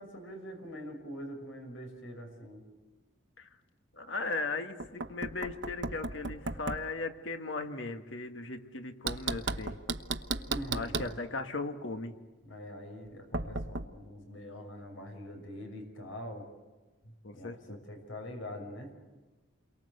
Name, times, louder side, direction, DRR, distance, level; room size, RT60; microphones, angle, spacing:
voice 1, 0.0-2.6 10.5-11.2 12.4-16.5 17.3-18.9, equal, 85° left, 4 dB, 5.9 m, -44 dB
voice 2, 4.0-9.8 10.7-12.2 17.0-17.8, left 3 dB, 70° left, 6 dB, 1.8 m, -37 dB
Knock, 4.8-6.9 9.1-11.2 13.3-13.9, right 3 dB, 70° right, 1.2 m, -35 dB
29.0 x 23.5 x 8.1 m, 1.2 s
head